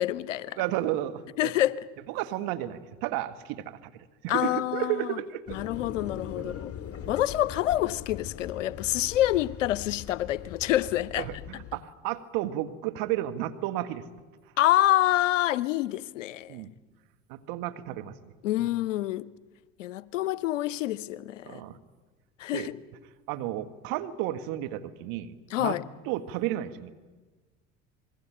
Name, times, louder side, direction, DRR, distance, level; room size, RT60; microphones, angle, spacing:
voice 1, 0.0-0.6 1.4-1.9 4.3-5.2 5.5-6.7 7.1-11.3 14.6-16.6 18.4-19.3 19.8-21.6 22.4-22.7 25.5-25.8, left 14 dB, 90° left, 0.8 m, -27 dB
voice 2, 0.6-1.5 2.1-5.6 6.4-6.5 7.0-7.1 11.2-14.0 16.5-16.7 17.3-18.3 18.6-18.7 21.4-21.8 22.5-22.7 23.3-25.8 26.0-26.9, right 13 dB, 65° right, 1.8 m, -33 dB
sound 1, 5.5-11.8, left 9 dB, 40° left, 2.4 m, -41 dB
27.0 x 21.0 x 9.1 m
hypercardioid pair, 70°, 36 cm